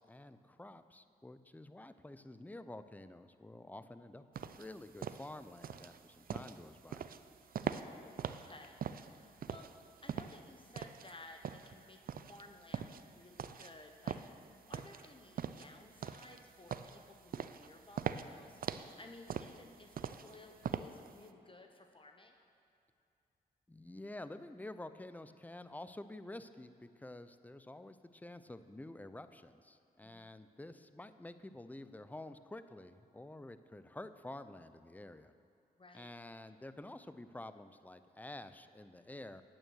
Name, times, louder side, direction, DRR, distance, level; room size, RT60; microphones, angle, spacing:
voice 1, 0.0-4.2 4.5-7.0 23.7-35.3 35.9-39.4, left 1 dB, 10° left, 12 dB, 0.6 m, -49 dB
sound 1, 4.4-21.3, right 8 dB, 60° right, 0.5 m, -43 dB
voice 2, 7.7-8.8 9.1-9.7 10.0-12.0 12.3-12.9 13.1-22.3 30.0-30.4 35.8-36.1, left 2 dB, 30° left, 4 dB, 1.0 m, -57 dB
9.2 x 8.9 x 6.4 m, 2.6 s
cardioid pair, 55°, 17 cm